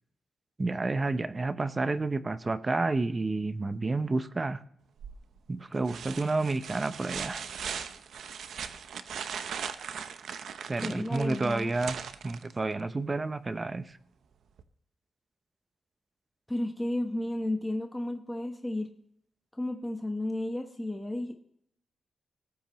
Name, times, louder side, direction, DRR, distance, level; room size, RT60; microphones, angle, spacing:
voice 1, 0.6-4.6 5.5-7.4 10.7-11.9 12.2-13.8, right 3 dB, 25° right, 13 dB, 0.7 m, -30 dB
sound 1, 5.0-5.4 5.8-12.8 14.6-14.7, right 7 dB, 80° right, 0.8 m, -39 dB
voice 2, 10.8-11.8 16.5-18.9 19.6-21.4, left 1 dB, 10° left, 4 dB, 1.1 m, -33 dB
18.0 x 8.5 x 3.0 m, 0.68 s
cardioid pair, 105°, 0 cm